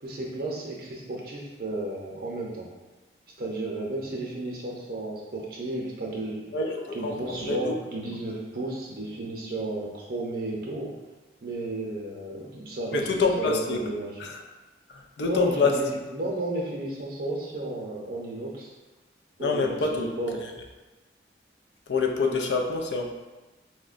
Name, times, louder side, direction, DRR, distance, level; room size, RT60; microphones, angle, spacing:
voice 1, 0.0-2.7 3.4-6.4 6.9-10.9 11.4-13.1 13.4-14.1 15.2-18.7 19.4-20.3, right 2 dB, 55° right, -2 dB, 0.6 m, -33 dB
voice 2, 6.5-7.8 12.9-13.9 14.2-14.4 14.9-15.8 19.4-20.2 21.9-23.1, left 4 dB, 70° left, 2 dB, 0.4 m, -26 dB
4.6 x 2.1 x 2.5 m, 1.2 s
head